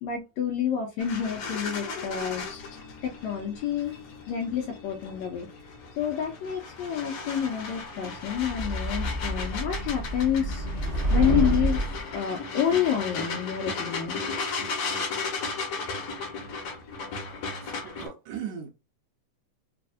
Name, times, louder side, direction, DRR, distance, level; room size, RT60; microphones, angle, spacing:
voice 1, 0.0-2.4 3.0-4.0 4.3-5.5 6.0-10.7 11.1-11.9 12.1-14.2, left 9 dB, 80° left, 1.7 m, -28 dB
sound 1, 1.0-18.1, left 4 dB, 65° left, 1.8 m, -36 dB
sound 2, 8.4-12.0, right 1 dB, 40° right, 0.9 m, -28 dB
voice 2, 17.6-18.7, right 8 dB, 75° right, 1.7 m, -38 dB
4.8 x 2.5 x 2.4 m
omnidirectional pair, 3.7 m